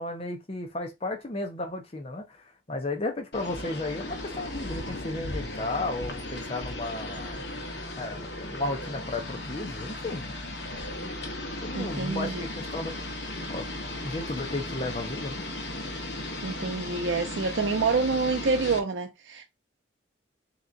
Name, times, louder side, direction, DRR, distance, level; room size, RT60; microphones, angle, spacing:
voice 1, 0.0-7.4 8.0-10.4 11.0-11.1 11.6-13.0 13.5-13.7 14.0-15.4, left 2 dB, 30° left, 0.7 m, -34 dB
sound 1, 3.3-18.8, left 1 dB, 60° left, 1.1 m, -36 dB
voice 2, 11.7-12.4 16.4-19.4, right 4 dB, 70° right, 0.5 m, -27 dB
3.5 x 2.9 x 3.8 m
head